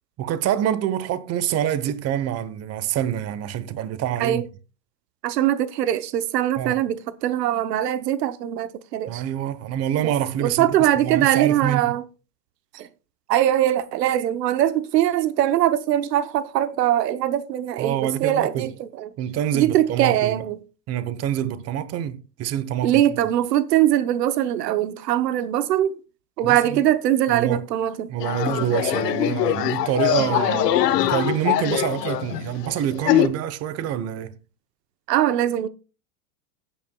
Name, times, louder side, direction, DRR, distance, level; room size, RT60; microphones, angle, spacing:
voice 1, 0.2-4.4 6.6-6.8 9.1-10.8 11.0-11.9 17.8-18.7 19.2-20.4 20.9-23.0 26.4-26.8 27.3-27.7 28.1-34.4, right 10 dB, 30° right, 1.0 m, -26 dB
voice 2, 5.2-9.2 10.4-12.0 12.7-12.9 13.3-19.1 19.5-20.6 22.8-26.0 26.4-28.1 35.1-35.7, right 12 dB, 85° right, 0.9 m, -22 dB
sound 1, 28.2-33.3, left 14 dB, 80° left, 1.1 m, -23 dB
18.0 x 9.2 x 2.3 m
supercardioid pair, 125°, 47 cm